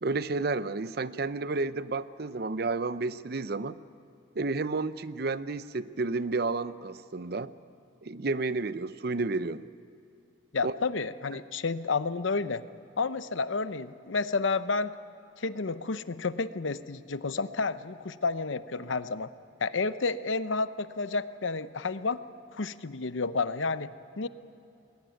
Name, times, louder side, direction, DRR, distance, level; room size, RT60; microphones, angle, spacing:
voice 1, 0.0-3.8 4.3-7.5 8.0-9.7 10.6-10.7, right 3 dB, 55° right, 15 dB, 0.6 m, -31 dB
voice 2, 10.5-12.6 13.0-14.9 15.4-19.3 19.6-22.2 22.5-23.9 24.2-24.3, left 4 dB, 85° left, 13 dB, 0.8 m, -30 dB
21.0 x 18.0 x 9.4 m, 2.7 s
head